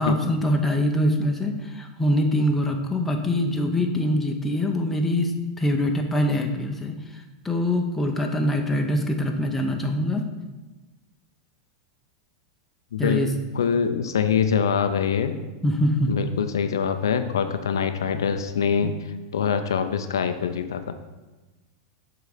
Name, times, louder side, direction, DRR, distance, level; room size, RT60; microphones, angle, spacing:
voice 1, 0.0-10.2 13.0-13.3 15.6-16.1 18.8-18.9, left 1 dB, 10° left, 2 dB, 0.8 m, -24 dB
voice 2, 12.9-13.2 13.5-15.3 16.1-18.9 19.3-20.9, left 7 dB, 80° left, 9 dB, 0.5 m, -24 dB
6.6 x 3.9 x 4.9 m, 1.2 s
hypercardioid pair, 100°, 2 cm